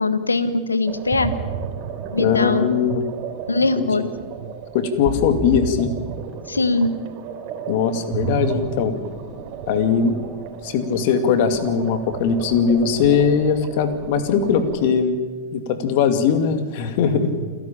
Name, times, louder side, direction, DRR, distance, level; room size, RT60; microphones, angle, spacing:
voice 1, 0.0-1.3 2.1-2.7 3.5-4.1 6.5-6.9, left 3 dB, 90° left, 13 dB, 1.3 m, -21 dB
sound 1, 0.9-14.9, right 6 dB, 50° right, 3.4 m, -32 dB
voice 2, 2.2-3.0 3.8-4.1 4.7-5.9 7.7-8.9 9.7-10.2 10.6-15.2 15.5-17.3, left 6 dB, 55° left, 8 dB, 2.4 m, -20 dB
28.5 x 11.5 x 8.7 m, 1.5 s
hypercardioid pair, 100°, 0 cm